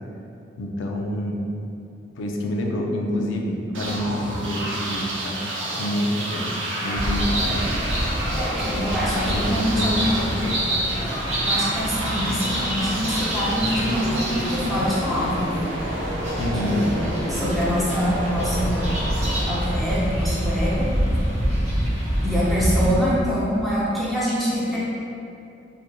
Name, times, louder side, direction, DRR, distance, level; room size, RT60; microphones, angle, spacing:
voice 1, 0.6-1.4 2.2-5.4 5.8-6.6 6.8-7.6 8.7-10.9 16.4-16.9, left 1 dB, 75° left, 1 dB, 0.4 m, -27 dB
sound 1, 3.7-20.5, right 1 dB, 80° right, 0.5 m, -30 dB
sound 2, 6.9-22.9, equal, 35° right, 0.7 m, -26 dB
voice 2, 8.4-10.0 11.4-15.7 16.6-18.9 19.5-20.9 22.2-24.8, equal, ahead, -9 dB, 0.5 m, -25 dB
3.0 x 2.4 x 2.2 m, 2.6 s
head